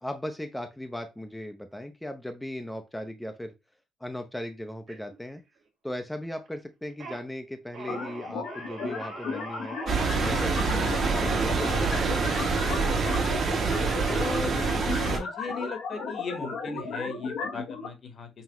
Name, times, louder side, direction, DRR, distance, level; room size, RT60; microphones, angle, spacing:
voice 1, 0.0-3.5 4.0-5.4 5.8-9.8 10.2-12.3, left 1 dB, 5° left, 6 dB, 0.5 m, -37 dB
sound 1, 4.9-5.6 5.9-6.5 6.8-7.2 7.7-12.3 12.8-13.2 13.8-14.8, right 4 dB, 70° right, 1.6 m, -44 dB
sound 2, 7.9-17.9, left 4 dB, 80° left, 1.0 m, -35 dB
sound 3, 9.9-15.2, right 4 dB, 55° right, 1.3 m, -26 dB
voice 2, 14.1-18.3, left 4 dB, 50° left, 7 dB, 1.2 m, -37 dB
5.5 x 2.3 x 2.9 m, 0.25 s
cardioid pair, 90°, 0 cm